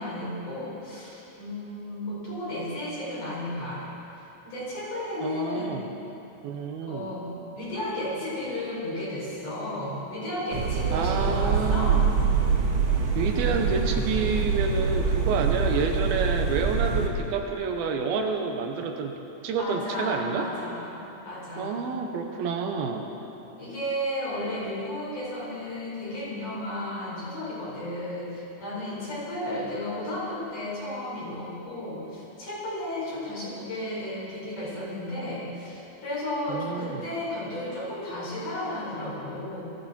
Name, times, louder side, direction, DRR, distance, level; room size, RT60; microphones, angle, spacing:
voice 1, 0.0-3.8 4.4-5.8 6.9-11.9 19.6-21.7 23.6-39.6, left 1 dB, 55° left, -7 dB, 6.0 m, -33 dB
voice 2, 5.2-5.9 6.4-7.1 10.9-12.0 13.1-19.2 19.4-20.5 21.6-23.1 36.5-37.0, right 5 dB, 85° right, 4 dB, 2.8 m, -29 dB
sound 1, 10.5-17.1, right 5 dB, 65° right, 1.3 m, -25 dB
19.0 x 14.5 x 4.3 m, 3.0 s
omnidirectional pair, 4.4 m